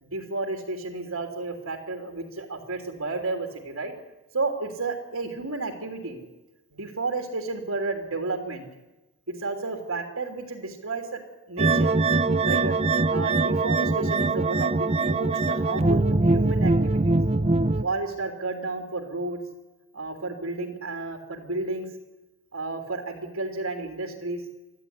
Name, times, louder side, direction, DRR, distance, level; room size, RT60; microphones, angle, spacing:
voice 1, 0.0-3.9 4.3-6.2 6.7-8.6 9.3-11.2 11.5-11.9 12.4-12.7 13.1-17.2 17.8-19.4 19.9-21.9 22.5-24.4, right 3 dB, 85° right, 3 dB, 3.2 m, -32 dB
sound 1, 11.6-17.8, right 3 dB, 30° right, 0.7 m, -22 dB
24.5 x 15.0 x 9.7 m, 1.0 s
head